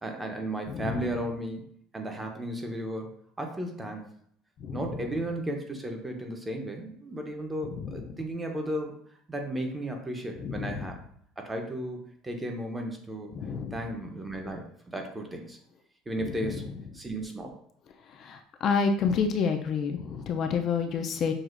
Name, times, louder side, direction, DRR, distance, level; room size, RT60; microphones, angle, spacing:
voice 1, 0.0-1.6 1.9-3.1 3.4-4.1 4.7-8.9 9.3-11.0 11.4-13.4 13.7-15.6 16.1-16.7 16.9-17.5, right 1 dB, 15° right, 3 dB, 0.7 m, -34 dB
voice 2, 0.7-1.0 4.7-4.8 10.4-10.7 13.4-13.7 18.2-21.3, left 5 dB, 45° left, 5 dB, 0.4 m, -28 dB
6.1 x 2.4 x 2.5 m, 0.66 s
cardioid pair, 125°, 0 cm